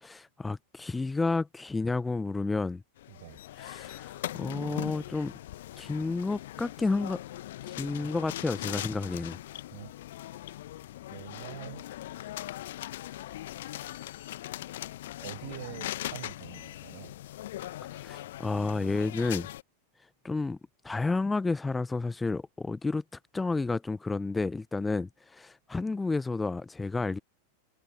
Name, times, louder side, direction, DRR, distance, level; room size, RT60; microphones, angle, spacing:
voice 1, 0.0-2.8 3.6-5.3 5.8-7.2 7.8-9.4 17.8-19.5 20.2-20.6 20.8-23.0 23.3-27.2, left 3 dB, 10° left, 0.5 m, -31 dB
sound 1, 3.0-19.6, left 14 dB, 55° left, 1.2 m, -40 dB
voice 2, 3.1-3.4 9.7-9.9 11.1-11.8 15.2-17.1, right 19 dB, 50° right, 4.8 m, -45 dB
figure-of-eight pair, 90°, 0 cm